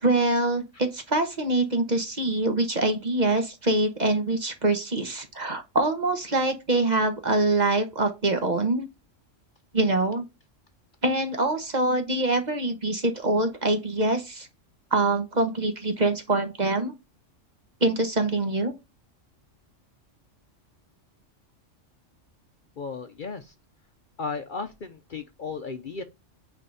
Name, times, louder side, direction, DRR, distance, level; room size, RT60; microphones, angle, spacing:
voice 1, 0.0-8.9 9.7-10.2 11.0-14.5 14.9-16.9 17.8-18.7, right 2 dB, 35° right, 1.2 m, -24 dB
voice 2, 22.8-23.4 24.2-24.7 25.1-26.0, left 4 dB, 50° left, 0.7 m, -34 dB
9.1 x 3.4 x 4.1 m
omnidirectional pair, 1.3 m